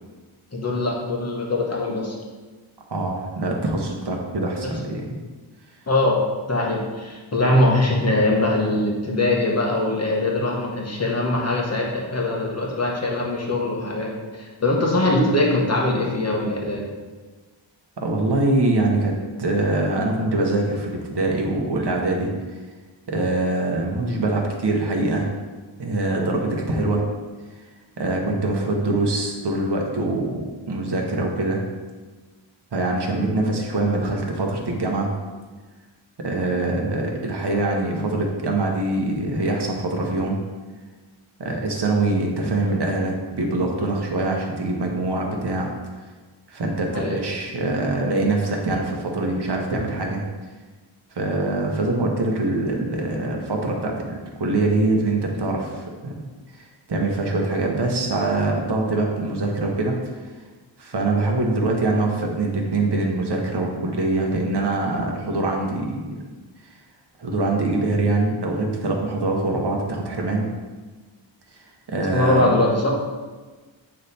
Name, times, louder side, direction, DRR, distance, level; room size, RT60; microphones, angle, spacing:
voice 1, 0.5-2.1 4.6-4.7 5.9-6.2 6.5-16.9 46.9-47.2 72.1-72.9, left 1 dB, 30° left, -2 dB, 1.2 m, -22 dB
voice 2, 2.9-5.2 18.0-19.1 19.4-22.3 23.1-25.3 25.8-27.0 28.0-31.6 32.7-35.1 36.2-40.4 41.4-45.7 46.5-50.2 51.1-56.2 56.6-60.1 60.8-66.1 66.6-66.7 67.2-70.4 71.9-72.5, right 2 dB, 55° right, 0 dB, 1.1 m, -24 dB
8.0 x 3.3 x 4.2 m, 1.3 s
wide cardioid pair, 115°, 49 cm